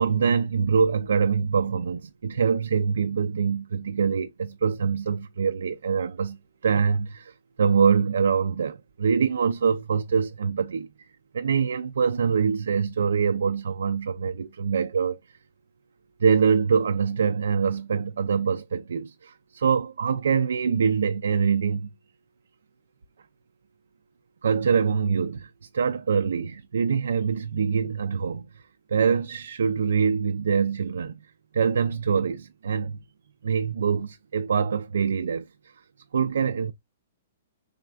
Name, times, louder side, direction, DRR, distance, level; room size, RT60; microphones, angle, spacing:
voice 1, 0.0-6.4 6.6-11.1 11.3-15.2 16.2-21.9 24.4-28.6 28.9-31.2 31.5-33.0 33.4-35.7 36.1-36.7, right 6 dB, 85° right, 0.3 m, -24 dB
4.1 x 3.5 x 2.3 m
hypercardioid pair, 145°, 0 cm